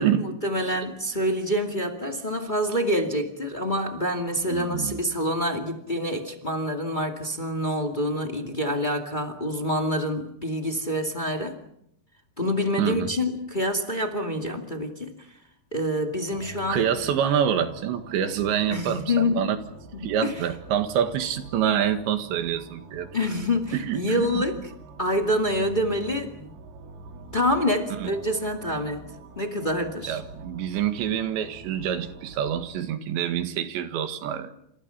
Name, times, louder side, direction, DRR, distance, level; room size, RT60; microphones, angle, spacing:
voice 1, 0.0-11.6 12.4-15.1 15.7-16.9 18.7-19.5 20.0-20.3 23.1-24.6 25.0-26.5 27.3-29.0 29.3-30.2, equal, 30° left, 4 dB, 0.9 m, -27 dB
voice 2, 4.5-5.0 12.8-13.1 16.7-19.6 20.0-23.1 23.7-24.5 27.9-28.1 30.1-34.5, right 9 dB, 80° right, 8 dB, 4.0 m, -26 dB
sound 1, 16.3-32.7, right 2 dB, 60° right, 4.6 m, -45 dB
29.5 x 27.0 x 5.8 m, 0.73 s
omnidirectional pair, 5.2 m